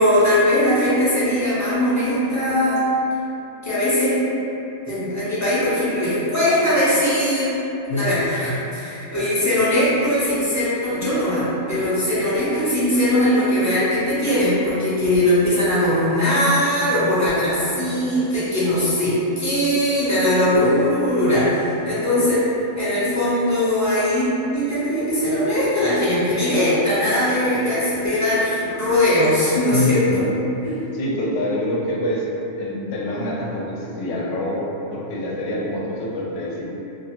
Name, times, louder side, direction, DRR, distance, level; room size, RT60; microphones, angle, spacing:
voice 1, 0.0-2.8 3.6-4.2 4.9-7.5 7.9-22.5 22.8-24.3 24.5-30.2 30.6-30.9, left 1 dB, 25° left, -12 dB, 0.4 m, -20 dB
voice 2, 29.7-30.3 30.9-32.3 32.6-36.6, left 1 dB, 70° left, -4 dB, 0.8 m, -25 dB
2.5 x 2.4 x 2.8 m, 3.0 s
omnidirectional pair, 1.3 m